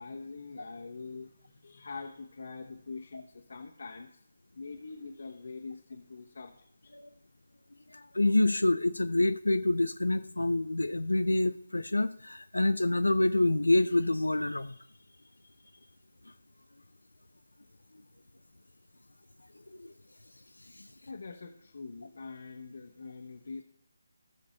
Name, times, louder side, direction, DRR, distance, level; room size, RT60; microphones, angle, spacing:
voice 1, 0.0-4.2 4.5-7.0 21.0-23.6, left 4 dB, 60° left, 1 dB, 1.4 m, -44 dB
voice 2, 7.9-14.8 19.7-19.9 20.7-20.9, left 2 dB, 85° left, 10 dB, 0.5 m, -27 dB
18.5 x 6.7 x 3.2 m, 0.69 s
figure-of-eight pair, 155°, 0 cm